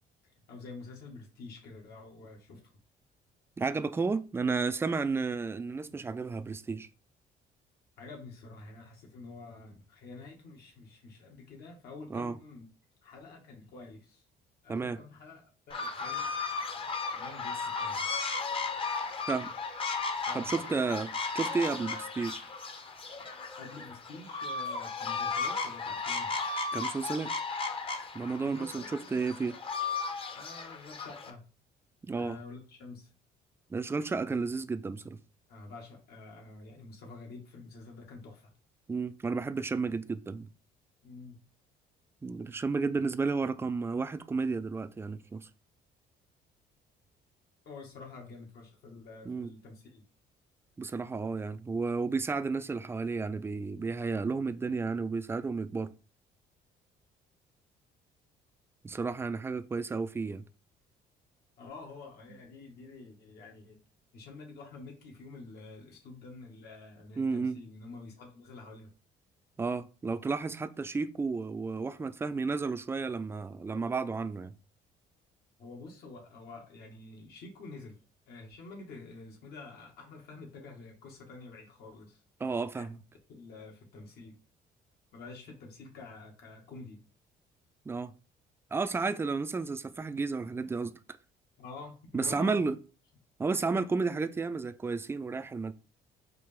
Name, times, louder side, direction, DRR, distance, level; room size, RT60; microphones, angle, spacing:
voice 1, 0.5-2.6 8.0-12.7 13.0-14.2 14.6-16.5 17.1-18.1 20.2-20.7 23.6-26.3 28.4-29.4 30.3-31.4 32.1-33.1 35.5-38.5 41.0-41.4 47.7-50.0 61.6-63.8 64.1-68.9 75.6-78.0 78.3-82.2 82.7-83.0 83.3-84.3 85.1-87.0 91.6-92.6, left 3 dB, 70° left, 1.8 m, -48 dB
voice 2, 3.6-6.9 12.1-12.4 14.7-15.0 18.1-18.2 19.3-19.5 20.3-22.4 26.7-27.3 28.1-29.6 32.0-32.4 33.7-35.2 38.9-40.5 42.2-45.5 49.3-49.5 50.8-55.9 58.8-60.4 67.2-67.6 69.6-74.5 82.4-83.0 87.9-88.1 88.7-91.0 92.1-92.8 93.4-95.7, right 4 dB, 15° right, 0.3 m, -32 dB
sound 1, 15.7-31.3, left 4 dB, 35° left, 0.8 m, -35 dB
4.7 x 2.9 x 3.5 m
cardioid pair, 110°, 17 cm